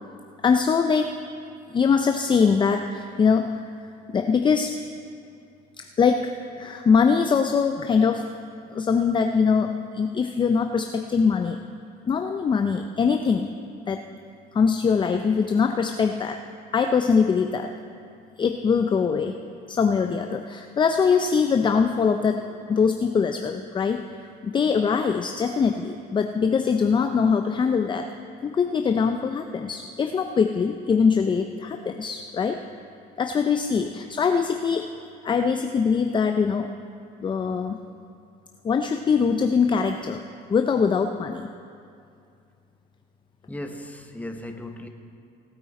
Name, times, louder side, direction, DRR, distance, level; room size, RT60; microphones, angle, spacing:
voice 1, 0.4-1.2 1.7-3.7 4.1-4.8 5.8-8.3 8.7-11.6 12.0-13.5 13.9-14.0 14.5-16.4 16.7-17.7 18.4-19.3 19.7-22.4 22.7-24.0 24.4-28.1 28.4-32.6 33.2-34.9 35.2-36.7 37.2-37.8 38.6-40.2 40.5-41.5, left 5 dB, 30° left, 6 dB, 0.5 m, -22 dB
voice 2, 43.5-44.9, left 1 dB, 10° left, 4 dB, 1.1 m, -36 dB
18.5 x 8.8 x 4.2 m, 2.4 s
cardioid pair, 110°, 17 cm